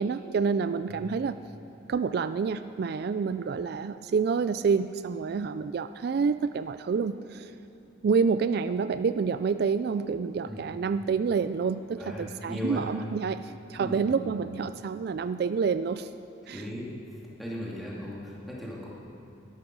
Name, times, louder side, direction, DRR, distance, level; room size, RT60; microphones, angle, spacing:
voice 1, 0.0-1.4 1.9-7.5 8.0-16.1 16.5-16.6, right 5 dB, 55° right, 12 dB, 0.3 m, -28 dB
voice 2, 12.0-12.9 13.8-14.1 16.4-16.9 17.4-18.9, equal, ahead, -6 dB, 2.5 m, -37 dB
13.0 x 11.5 x 6.1 m, 2.8 s
head